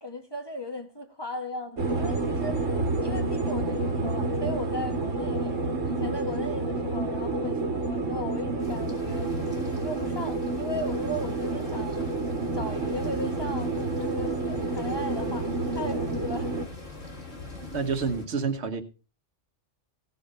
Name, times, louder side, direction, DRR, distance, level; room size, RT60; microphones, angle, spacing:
voice 1, 0.0-2.6 3.0-9.3 9.8-12.2 12.5-16.5, left 1 dB, 20° left, 1.6 m, -36 dB
sound 1, 1.8-16.6, right 3 dB, 80° right, 1.9 m, -29 dB
sound 2, 8.6-18.2, left 2 dB, 85° left, 3.6 m, -42 dB
voice 2, 17.6-18.8, right 5 dB, 60° right, 1.5 m, -29 dB
16.5 x 6.8 x 5.5 m
omnidirectional pair, 1.3 m